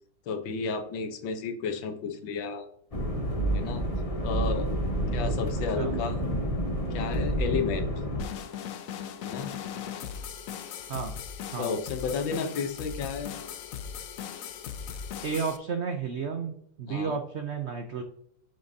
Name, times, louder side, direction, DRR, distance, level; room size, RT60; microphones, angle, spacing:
voice 1, 0.3-2.6 3.5-3.8 4.2-4.7 5.1-6.2 6.9-7.9 9.2-9.5 11.6-13.3 16.9-17.2, left 5 dB, 90° left, 7 dB, 1.7 m, -32 dB
sound 1, 2.9-8.2, right 1 dB, 25° left, 0.8 m, -29 dB
voice 2, 5.0-6.0 10.9-11.1 11.5-11.7 15.2-18.0, right 6 dB, 85° right, 6 dB, 0.6 m, -33 dB
sound 2, 8.2-15.6, left 8 dB, 70° left, 0.8 m, -38 dB
7.8 x 6.4 x 2.7 m, 0.69 s
omnidirectional pair, 2.0 m